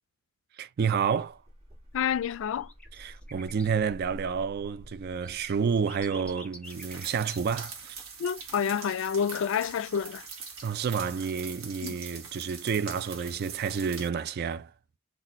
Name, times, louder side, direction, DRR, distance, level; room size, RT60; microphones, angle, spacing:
voice 1, 0.6-1.4 3.0-8.1 10.6-14.7, right 6 dB, 50° right, 0.3 m, -30 dB
sound 1, 1.1-6.3, equal, 30° right, 1.4 m, -49 dB
voice 2, 1.9-2.7 8.2-10.3 11.8-12.0, left 7 dB, 65° left, 0.3 m, -29 dB
sound 2, 2.6-3.7 5.2-7.6 9.0-9.1, left 1 dB, 5° left, 0.7 m, -48 dB
sound 3, 6.6-14.1, right 5 dB, 70° right, 1.1 m, -43 dB
4.1 x 2.2 x 4.0 m
head